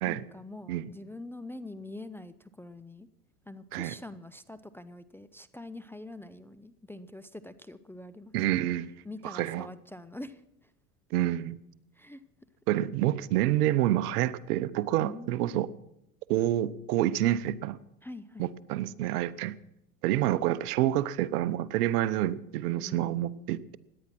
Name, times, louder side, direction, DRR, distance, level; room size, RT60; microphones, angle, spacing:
voice 1, 0.1-3.1 3.5-8.3 9.0-10.4 12.0-12.2 15.0-15.7 18.0-18.5 22.8-23.6, left 2 dB, 5° left, 12 dB, 0.5 m, -44 dB
voice 2, 8.3-8.9 9.2-9.7 11.1-11.6 12.7-15.7 16.3-17.8 18.4-19.5 20.0-23.8, right 13 dB, 75° right, 16 dB, 1.0 m, -28 dB
17.0 x 11.0 x 6.0 m, 0.83 s
hypercardioid pair, 105°, 47 cm